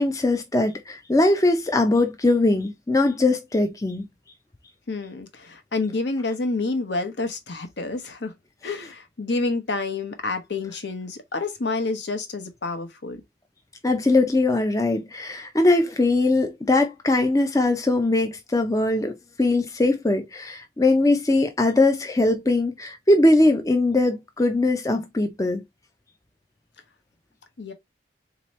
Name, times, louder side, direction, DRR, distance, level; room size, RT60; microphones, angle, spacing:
voice 1, 0.0-4.1 13.8-25.6, left 2 dB, 15° left, 0.4 m, -21 dB
voice 2, 4.9-8.3 8.6-13.2 27.6-27.7, left 3 dB, 70° left, 1.0 m, -28 dB
4.0 x 3.0 x 3.0 m
head